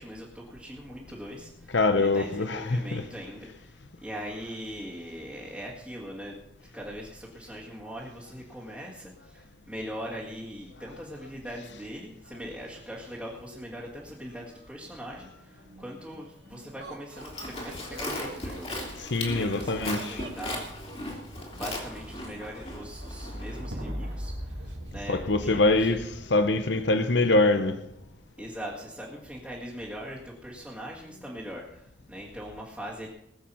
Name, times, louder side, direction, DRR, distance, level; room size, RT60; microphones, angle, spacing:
voice 1, 0.0-6.4 6.7-19.1 19.3-20.6 21.5-26.0 28.4-33.1, equal, 5° right, 2.1 m, -41 dB
voice 2, 1.7-3.0 19.0-20.1 25.1-27.8, left 2 dB, 65° left, 0.9 m, -24 dB
sound 1, 11.6-13.0 13.2-28.3 29.0-29.6, equal, 85° right, 2.9 m, -43 dB
Laughter, 16.8-21.9 22.9-23.8 24.1-24.2 24.5-25.0, right 3 dB, 70° right, 2.1 m, -48 dB
Livestock farm animals working animals, 17.2-23.6, left 1 dB, 30° left, 2.9 m, -37 dB
20.0 x 7.4 x 5.7 m
head